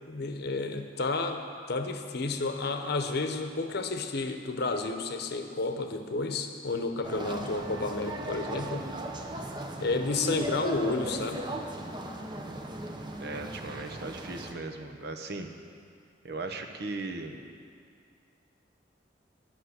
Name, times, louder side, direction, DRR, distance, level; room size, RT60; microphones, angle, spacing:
voice 1, 0.1-8.8 9.8-11.5, left 3 dB, 60° left, 6 dB, 0.8 m, -31 dB
sound 1, 7.0-14.5, right 1 dB, 25° right, 0.8 m, -37 dB
voice 2, 13.2-15.5 16.2-17.4, right 3 dB, 60° right, 5 dB, 0.9 m, -37 dB
11.5 x 6.2 x 8.1 m, 2.3 s
head